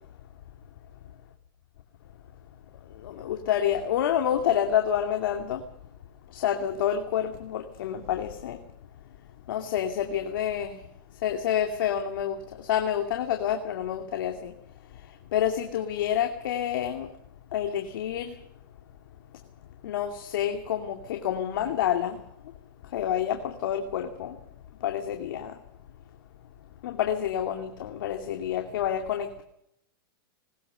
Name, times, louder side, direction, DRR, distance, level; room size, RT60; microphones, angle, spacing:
voice 1, 2.9-5.6 6.3-8.6 9.5-10.8 11.2-14.5 14.9-17.1 17.5-18.4 19.8-22.2 22.8-24.4 24.8-25.6 26.8-29.4, left 10 dB, 70° left, 4 dB, 2.6 m, -28 dB
20.5 x 20.0 x 6.9 m, 0.75 s
hypercardioid pair, 125°, 12 cm